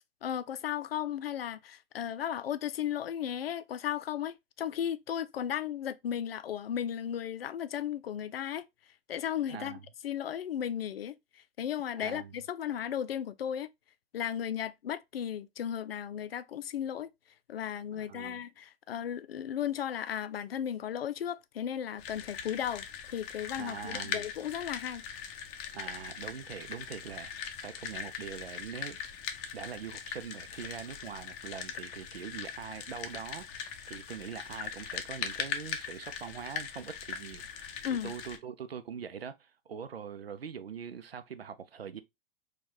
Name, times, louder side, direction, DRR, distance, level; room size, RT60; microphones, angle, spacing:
voice 1, 0.2-8.7 9.1-11.1 11.6-13.7 14.1-17.1 17.5-25.0 37.8-38.1, left 9 dB, 75° left, 0.5 m, -35 dB
voice 2, 9.5-9.8 12.0-12.3 17.9-18.4 23.6-24.3 25.7-29.0 29.5-42.0, right 7 dB, 85° right, 0.5 m, -43 dB
sound 1, 22.0-38.4, left 8 dB, 35° left, 0.6 m, -41 dB
4.3 x 2.3 x 2.8 m
figure-of-eight pair, 95°, 30 cm